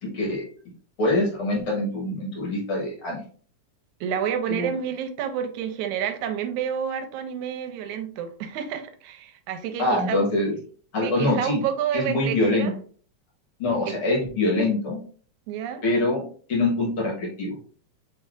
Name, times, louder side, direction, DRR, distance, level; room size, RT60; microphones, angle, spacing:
voice 1, 0.0-0.5 1.0-3.2 4.5-4.7 9.8-10.6 10.9-11.6 11.9-12.7 13.6-15.0 15.8-16.2 16.5-17.5, left 2 dB, 55° left, -2 dB, 1.7 m, -24 dB
voice 2, 4.0-10.3 11.0-12.8 13.9-14.0 15.5-15.8, right 8 dB, 85° right, 7 dB, 2.0 m, -29 dB
4.4 x 4.3 x 2.3 m, 0.43 s
omnidirectional pair, 3.4 m